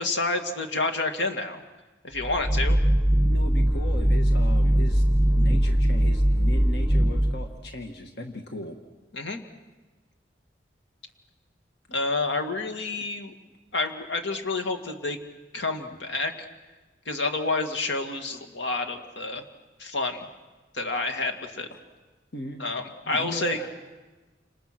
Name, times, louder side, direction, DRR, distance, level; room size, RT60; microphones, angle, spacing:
voice 1, 0.0-1.6 2.0-2.8 9.1-9.4 11.9-13.3 13.7-15.2 15.5-16.3 17.1-19.4 19.8-20.3 20.7-21.7 22.6-23.6, left 3 dB, 85° left, 5 dB, 2.4 m, -29 dB
sound 1, 2.2-7.6, equal, 5° right, 1.3 m, -21 dB
voice 2, 3.3-5.0 5.3-8.8 13.0-13.1 21.7-21.8 22.3-22.7 23.0-23.7, left 1 dB, 65° left, 4 dB, 1.7 m, -37 dB
29.5 x 27.0 x 6.2 m, 1.2 s
head